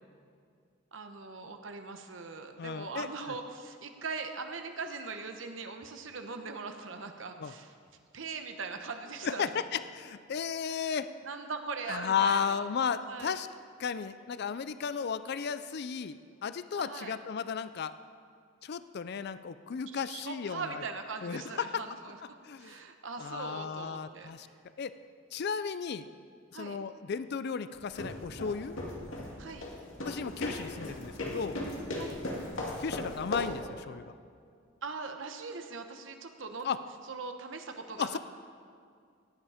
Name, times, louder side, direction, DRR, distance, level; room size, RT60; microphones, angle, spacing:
voice 1, 0.9-7.7 8.1-9.5 10.6-10.9 11.2-12.6 13.0-13.4 16.7-17.2 20.1-22.2 22.6-24.5 26.5-26.8 29.4-29.7 31.9-32.2 34.8-36.7 37.1-38.2, right 4 dB, 75° right, 6 dB, 1.1 m, -41 dB
voice 2, 2.6-3.4 7.4-7.5 9.2-11.1 11.9-13.5 13.8-17.9 18.6-20.8 21.2-21.8 22.4-22.8 23.2-24.5 24.8-24.9 25.3-26.1 26.5-28.8 30.0-31.6 32.8-34.1 36.6-36.8 38.0-38.2, left 6 dB, 55° left, 13 dB, 0.4 m, -34 dB
sound 1, 27.8-33.7, left 1 dB, 85° left, 2.3 m, -38 dB
17.5 x 10.0 x 5.0 m, 2.2 s
head